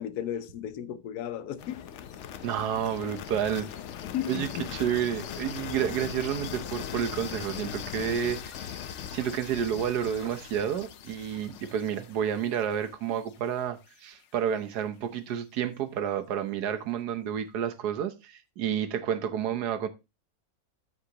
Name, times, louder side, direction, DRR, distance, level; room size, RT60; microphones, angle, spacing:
voice 1, 0.0-1.8 4.0-4.7, left 10 dB, 80° left, 1.2 m, -34 dB
sound 1, 1.6-13.5, left 9 dB, 60° left, 0.8 m, -40 dB
voice 2, 2.4-3.7 4.3-8.8 9.1-19.9, right 9 dB, 90° right, 1.4 m, -30 dB
13.0 x 4.9 x 2.9 m
omnidirectional pair, 1.7 m